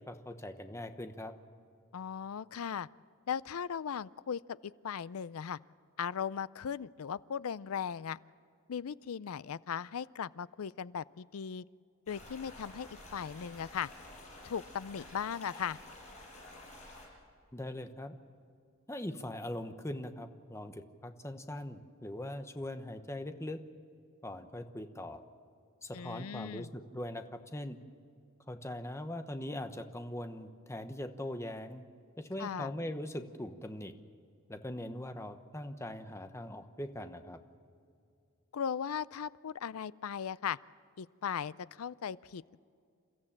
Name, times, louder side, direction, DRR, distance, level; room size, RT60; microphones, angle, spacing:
voice 1, 0.1-1.3 17.5-18.1 18.9-23.6 24.2-25.2 25.8-27.2 27.5-27.8 28.5-31.8 32.2-33.9 34.5-37.4, left 1 dB, 15° left, 7 dB, 1.0 m, -41 dB
voice 2, 1.9-2.9 3.3-5.6 6.0-8.2 8.7-11.6 12.1-13.9 14.4-15.8 25.9-26.7 32.4-32.7 38.5-40.6 41.0-42.6, left 7 dB, 85° left, 19 dB, 0.4 m, -38 dB
sound 1, 12.1-17.1, left 1 dB, 35° left, 6.2 m, -51 dB
29.0 x 14.0 x 7.3 m, 2.4 s
head